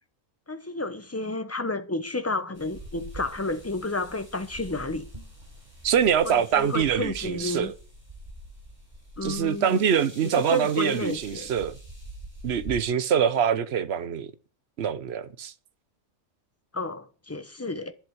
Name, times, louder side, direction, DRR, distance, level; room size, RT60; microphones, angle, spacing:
voice 1, 0.5-5.1 6.2-7.7 9.2-9.8 10.2-11.5 16.7-17.9, left 2 dB, 15° left, 1.0 m, -31 dB
sound 1, 2.5-12.8, right 1 dB, 35° right, 6.2 m, -45 dB
voice 2, 5.8-7.7 9.2-11.8 12.4-14.3 14.8-15.5, right 8 dB, 60° right, 1.1 m, -24 dB
11.5 x 7.7 x 7.9 m
omnidirectional pair, 1.3 m